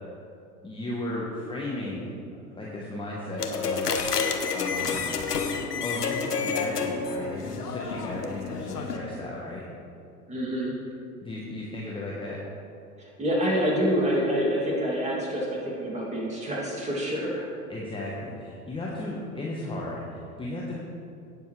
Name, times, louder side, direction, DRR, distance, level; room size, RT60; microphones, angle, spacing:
voice 1, 0.6-2.1 2.5-4.0 4.5-5.1 5.8-9.6 11.2-12.4 17.7-20.8, left 1 dB, 10° left, -5 dB, 1.2 m, -35 dB
sound 1, 3.4-9.0, left 5 dB, 80° left, 1.1 m, -29 dB
voice 2, 10.3-10.7 13.0-17.4, equal, 15° right, -4 dB, 2.8 m, -27 dB
17.5 x 7.1 x 3.3 m, 2.5 s
figure-of-eight pair, 90°, 47 cm